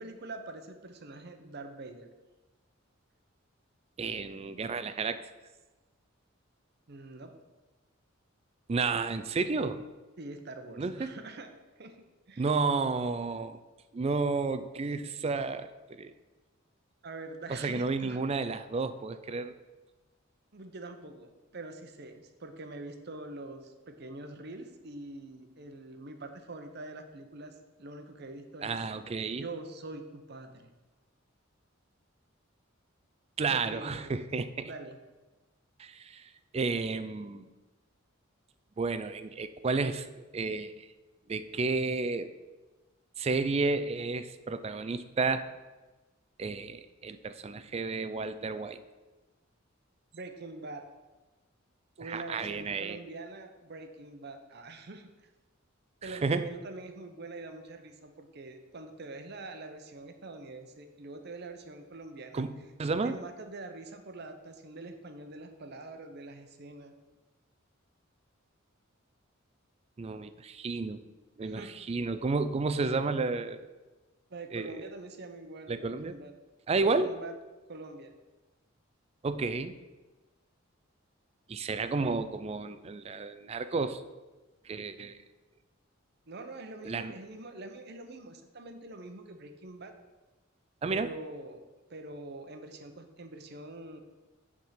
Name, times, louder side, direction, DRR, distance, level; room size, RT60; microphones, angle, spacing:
voice 1, 0.0-2.1 6.9-7.3 10.2-11.5 11.8-12.0 12.3-12.5 17.0-18.2 20.5-27.5 27.8-28.8 29.3-30.7 33.5-34.2 34.6-35.0 50.1-50.8 52.0-55.1 56.0-62.4 63.0-66.9 71.4-71.7 74.3-76.3 76.8-77.3 77.7-78.1 81.9-82.2 86.3-89.9 90.9-91.6 91.9-94.0, right 2 dB, 55° right, 7 dB, 0.8 m, -44 dB
voice 2, 4.0-5.2 8.7-9.8 10.8-11.2 12.4-13.6 13.9-16.1 17.5-19.5 28.6-29.5 33.4-34.7 35.8-37.5 38.8-40.9 41.3-42.3 43.2-45.4 46.4-48.8 52.0-53.0 56.0-56.5 62.3-63.2 70.0-71.0 71.4-73.7 74.5-74.8 75.7-76.1 76.7-77.1 79.2-79.7 81.5-84.0 84.6-85.2 86.8-87.1 90.8-91.1, right 4 dB, 30° right, 11 dB, 0.4 m, -31 dB
9.2 x 3.7 x 5.7 m, 1.2 s
head